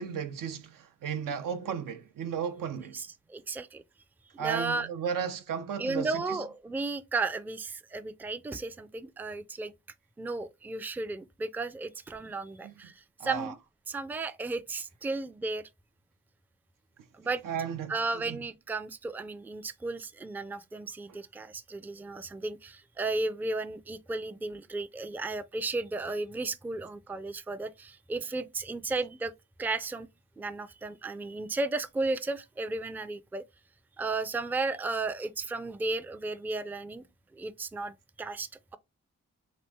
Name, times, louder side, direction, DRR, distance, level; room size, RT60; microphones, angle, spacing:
voice 1, 0.0-3.0 4.4-6.5 12.6-12.9 13.2-13.6 17.4-18.4, right 7 dB, 80° right, 0.6 m, -35 dB
voice 2, 2.9-3.8 4.3-4.9 5.8-9.7 10.2-13.6 13.9-15.6 17.1-17.4 17.9-29.3 29.6-30.1 30.4-33.4 34.0-37.1 37.3-38.8, right 3 dB, 5° right, 0.3 m, -34 dB
3.0 x 2.6 x 3.3 m
cardioid pair, 60°, 32 cm